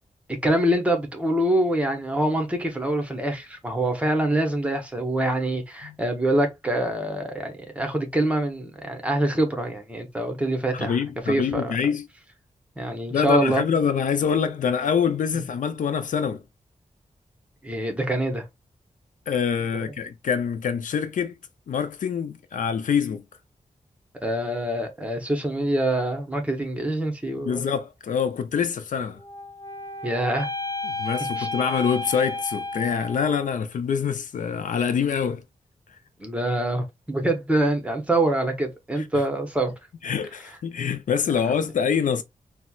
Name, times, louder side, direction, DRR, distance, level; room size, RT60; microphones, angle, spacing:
voice 1, 0.4-11.0 11.3-11.7 12.8-13.6 17.6-18.5 19.7-19.8 24.2-27.6 30.0-30.5 31.4-31.5 36.2-39.7, right 1 dB, 10° right, 0.8 m, -25 dB
voice 2, 10.7-12.1 13.1-16.4 19.3-21.3 21.7-23.2 27.4-29.2 30.8-35.4 39.0-39.2 40.0-42.2, left 7 dB, 80° left, 0.4 m, -25 dB
sound 1, 29.2-33.5, left 2 dB, 25° left, 0.6 m, -32 dB
4.2 x 2.0 x 2.3 m
wide cardioid pair, 125°, 13 cm